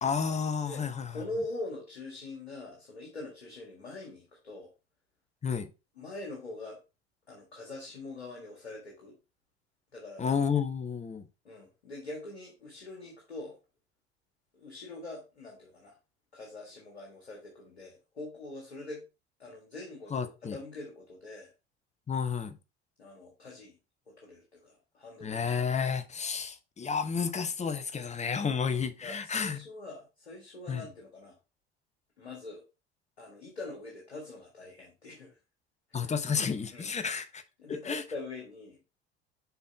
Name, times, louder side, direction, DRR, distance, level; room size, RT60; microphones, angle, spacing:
voice 1, 0.0-1.2 5.4-5.7 10.2-11.3 20.1-20.6 22.1-22.6 25.2-29.6 30.7-30.9 35.9-37.4 37.9-38.0, left 6 dB, 20° left, 0.9 m, -31 dB
voice 2, 0.6-4.7 5.9-6.8 7.3-9.2 9.9-10.3 11.4-13.6 14.5-16.0 16.3-19.0 19.4-21.5 23.0-23.8 24.1-25.6 29.0-31.3 32.2-32.6 33.2-35.4 35.9-36.1 36.7-36.9 37.6-38.8, left 2 dB, 80° left, 1.7 m, -43 dB
7.0 x 4.4 x 4.3 m
figure-of-eight pair, 65°, 32 cm